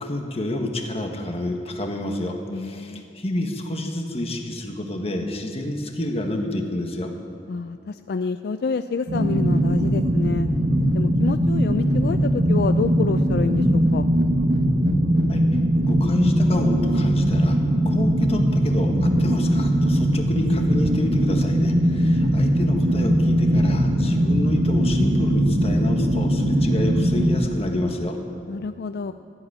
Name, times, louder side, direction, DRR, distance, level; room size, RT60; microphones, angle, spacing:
voice 1, 0.0-7.1 15.3-15.4 15.9-17.6 17.8-28.2, left 1 dB, 35° left, 3 dB, 1.5 m, -28 dB
voice 2, 2.5-3.0 7.5-10.5 10.9-14.1 22.0-22.2 28.5-29.1, left 4 dB, 60° left, 10 dB, 0.4 m, -28 dB
sound 1, 9.1-27.4, equal, 80° right, 1.4 m, -20 dB
14.5 x 8.1 x 10.0 m, 2.5 s
head